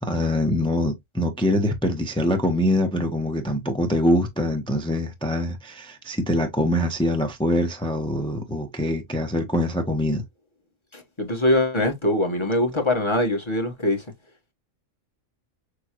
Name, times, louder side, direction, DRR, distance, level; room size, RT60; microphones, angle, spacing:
voice 1, 0.0-10.2, left 1 dB, 5° left, 0.8 m, -24 dB
voice 2, 10.9-14.0, left 1 dB, 25° left, 1.3 m, -23 dB
6.5 x 2.3 x 3.0 m
omnidirectional pair, 1.3 m